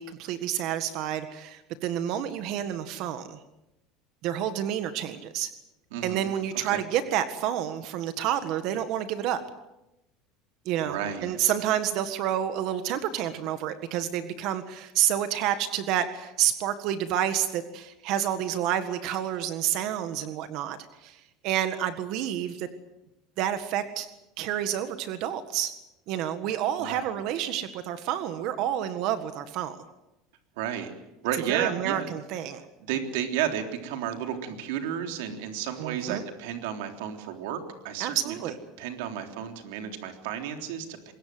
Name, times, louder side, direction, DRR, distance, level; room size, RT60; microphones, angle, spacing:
voice 1, 0.0-3.4 4.2-5.5 6.0-9.4 10.6-22.7 23.4-24.1 24.4-25.7 26.1-29.8 31.5-32.6 35.8-36.2 38.0-38.6, right 10 dB, 55° right, 10 dB, 1.7 m, -29 dB
voice 2, 5.9-6.3 6.6-6.8 10.8-11.4 26.8-27.2 30.6-30.9 31.2-32.1 32.8-38.3 38.8-41.1, right 9 dB, 80° right, 5 dB, 3.5 m, -32 dB
25.0 x 21.5 x 7.9 m, 0.93 s
cardioid pair, 150°, 0 cm